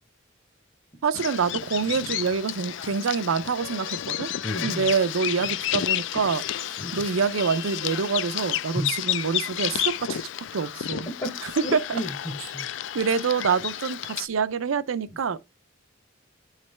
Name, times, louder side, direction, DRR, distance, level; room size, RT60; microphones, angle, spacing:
voice 1, 1.0-4.3 4.6-6.4 6.9-10.2 10.5-11.1 11.7-11.8 12.9-15.4, right 5 dB, 80° right, 0.5 m, -26 dB
Bird vocalization bird call bird song, 1.1-14.3, left 11 dB, 60° left, 0.3 m, -31 dB
voice 2, 4.4-4.9 5.3-5.5 6.8-7.1 8.7-9.0 11.1-12.7, left 1 dB, 20° left, 0.8 m, -33 dB
9.4 x 3.2 x 3.1 m
head